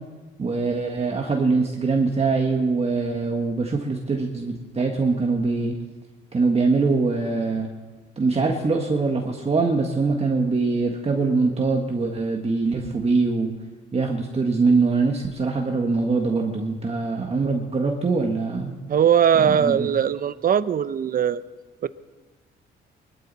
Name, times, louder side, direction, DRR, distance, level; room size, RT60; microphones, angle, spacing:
voice 1, 0.4-5.7 6.3-7.7 8.2-13.5 13.9-18.8 19.4-19.9, right 4 dB, 30° right, 1 dB, 1.6 m, -23 dB
voice 2, 18.9-21.4 21.8-21.9, right 8 dB, 45° right, 16 dB, 0.6 m, -20 dB
23.0 x 13.0 x 4.2 m, 1.2 s
cardioid pair, 90°, 20 cm